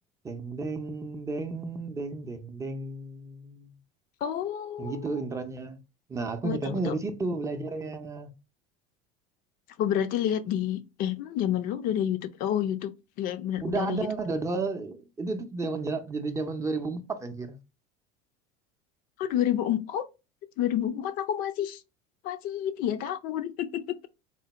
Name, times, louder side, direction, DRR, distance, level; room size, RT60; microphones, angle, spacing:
voice 1, 0.2-3.7 4.8-5.8 6.1-8.3 13.6-17.6, right 3 dB, 15° right, 0.5 m, -32 dB
voice 2, 4.2-5.1 6.4-6.9 9.8-12.9 13.2-14.1 19.2-20.1 20.6-21.8 22.2-24.1, left 10 dB, 55° left, 0.4 m, -29 dB
3.7 x 2.2 x 4.1 m
supercardioid pair, 130°, 18 cm